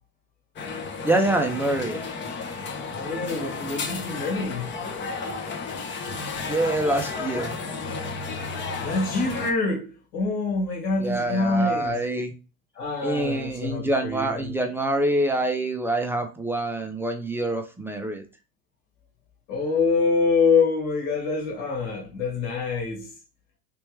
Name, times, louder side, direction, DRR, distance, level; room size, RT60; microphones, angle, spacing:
sound 1, 0.6-9.5, left 4 dB, 25° left, 0.7 m, -33 dB
voice 1, 1.0-2.0 6.5-7.5 11.0-12.3 13.0-18.2, right 1 dB, 5° right, 0.4 m, -25 dB
voice 2, 2.9-4.8 8.8-12.0 12.8-14.5 19.5-23.1, left 4 dB, 60° left, 1.8 m, -25 dB
3.4 x 3.0 x 3.2 m
hypercardioid pair, 80°, 45 cm